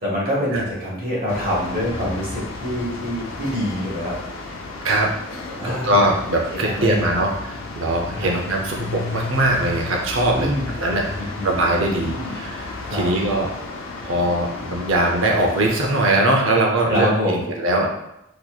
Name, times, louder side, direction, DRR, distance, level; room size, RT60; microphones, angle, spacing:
voice 1, 0.0-4.2 5.6-6.1 6.5-7.3 8.1-8.3 10.3-10.7 11.2-12.4 12.9-13.1 16.9-17.5, equal, 45° right, -4 dB, 1.3 m, -26 dB
sound 1, 1.3-16.1, left 3 dB, 75° left, 0.6 m, -33 dB
voice 2, 5.6-7.3 7.8-10.5 10.8-11.0 11.4-13.5 14.0-17.9, right 1 dB, 75° right, 0 dB, 0.7 m, -21 dB
4.0 x 3.0 x 2.4 m, 0.83 s
head